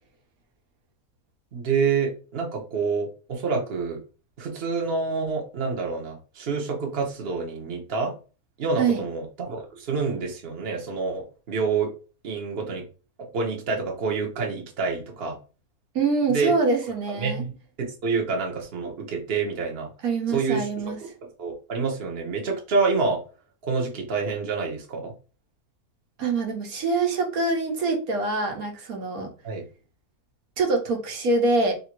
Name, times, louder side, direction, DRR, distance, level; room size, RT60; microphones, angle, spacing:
voice 1, 1.5-4.0 4.4-8.1 8.6-11.9 12.2-12.8 13.3-15.4 16.3-16.5 17.2-19.9 20.3-20.7 21.0-21.1 21.4-23.2 23.6-25.1 29.4-29.6, right 4 dB, 45° right, 0 dB, 1.2 m, -27 dB
voice 2, 15.9-17.4 20.0-21.0 26.2-29.3 30.6-31.7, right 3 dB, 75° right, 2 dB, 1.4 m, -24 dB
3.4 x 2.7 x 4.4 m, 0.34 s
omnidirectional pair, 1.6 m